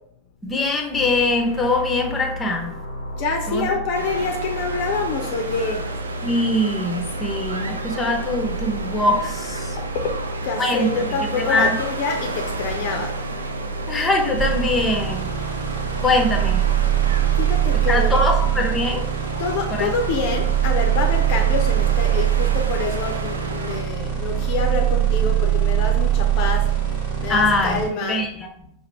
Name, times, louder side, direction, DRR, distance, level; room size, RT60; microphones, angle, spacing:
voice 1, 0.4-2.8 3.5-3.7 6.2-9.8 10.6-10.9 11.4-11.7 13.9-15.3 16.0-16.7 17.9-19.0 19.7-19.9 27.3-28.5, left 2 dB, 15° left, 2 dB, 0.7 m, -22 dB
sound 1, 0.9-14.5, equal, 90° left, 0.6 m, -32 dB
voice 2, 3.2-5.9 9.9-13.2 17.4-18.2 19.4-26.8 27.2-28.2, left 4 dB, 45° left, 3 dB, 0.6 m, -26 dB
sound 2, 3.9-23.8, right 3 dB, 75° right, 0.4 m, -33 dB
sound 3, 14.4-27.9, right 11 dB, 50° right, 1.1 m, -22 dB
4.9 x 2.5 x 3.0 m, 0.73 s
figure-of-eight pair, 90°, 0 cm